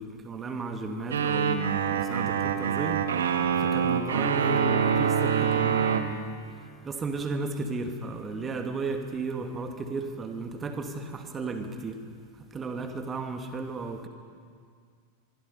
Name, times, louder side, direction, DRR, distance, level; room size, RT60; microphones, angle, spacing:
voice 1, 0.0-3.0 3.6-6.3 6.8-12.0 12.4-14.1, right 3 dB, 20° right, 5 dB, 2.2 m, -34 dB
sound 1, 1.1-6.0, right 7 dB, 65° right, 1.4 m, -25 dB
24.5 x 23.5 x 5.6 m, 2.1 s
figure-of-eight pair, 90°, 0 cm